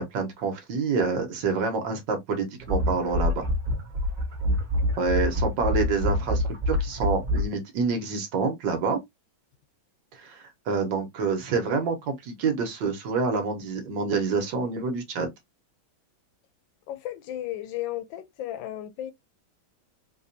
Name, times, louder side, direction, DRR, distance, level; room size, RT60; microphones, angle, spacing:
voice 1, 0.0-3.4 5.0-9.0 10.1-15.3, right 4 dB, 70° right, 1.6 m, -27 dB
sound 1, 2.6-7.5, left 1 dB, 30° right, 1.1 m, -26 dB
voice 2, 16.9-19.1, left 13 dB, 75° left, 1.3 m, -34 dB
4.0 x 2.9 x 2.7 m
omnidirectional pair, 2.2 m